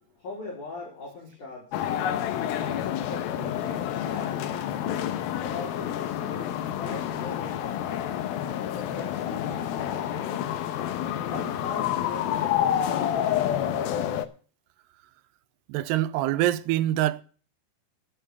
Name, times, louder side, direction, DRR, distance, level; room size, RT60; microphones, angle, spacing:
voice 1, 0.1-1.9 2.5-4.7 5.4-8.0 8.7-10.4 11.3-13.4, left 3 dB, 45° left, 5.7 m, -41 dB
sound 1, 1.7-14.2, left 10 dB, 70° left, 2.6 m, -29 dB
voice 2, 15.7-17.2, right 14 dB, 80° right, 2.7 m, -25 dB
11.5 x 8.6 x 6.9 m
omnidirectional pair, 5.0 m